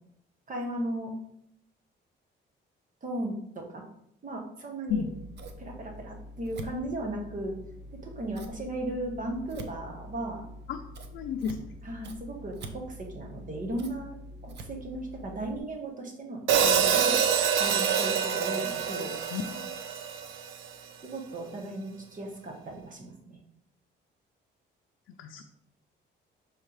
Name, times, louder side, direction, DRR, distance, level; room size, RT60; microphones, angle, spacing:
voice 1, 0.5-1.1 3.0-3.8 4.2-5.0 5.6-7.6 8.0-10.4 11.8-14.2 14.4-17.2 17.6-19.2 21.0-23.4, right 1 dB, 40° right, 1 dB, 1.7 m, -36 dB
Scissors, 4.9-15.6, equal, 60° right, 0.9 m, -45 dB
voice 2, 11.1-11.7 19.3-19.8 25.2-25.4, left 7 dB, 75° left, 3 dB, 0.6 m, -32 dB
Hi-hat, 16.5-20.7, right 7 dB, 90° right, 0.7 m, -26 dB
6.6 x 3.5 x 4.8 m, 0.74 s
cardioid pair, 90°, 20 cm